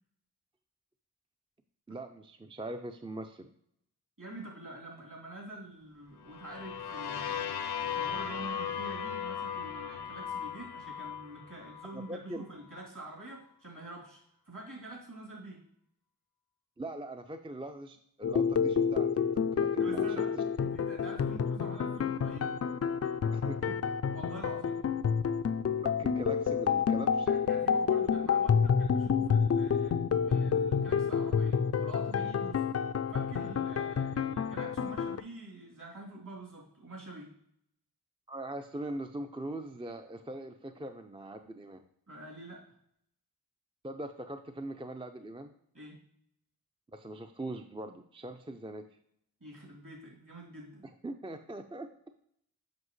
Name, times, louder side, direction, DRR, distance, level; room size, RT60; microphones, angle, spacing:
voice 1, 1.9-3.5 11.9-12.4 16.8-20.4 23.3-23.8 25.5-27.3 38.3-41.8 43.8-45.5 46.9-48.8 51.0-51.9, right 1 dB, 15° right, 6 dB, 0.5 m, -41 dB
voice 2, 4.2-7.5 7.8-15.6 19.8-20.3 20.6-22.5 24.1-24.8 27.3-30.0 30.3-32.6 33.1-37.3 42.1-42.6 45.7-46.0 49.4-50.8, right 1 dB, 50° right, -3 dB, 3.1 m, -46 dB
sound 1, 6.3-12.1, left 8 dB, 75° left, 0.7 m, -37 dB
sound 2, 18.2-35.2, left 6 dB, 40° left, 0.4 m, -29 dB
7.7 x 5.8 x 3.2 m, 0.71 s
cardioid pair, 50°, 39 cm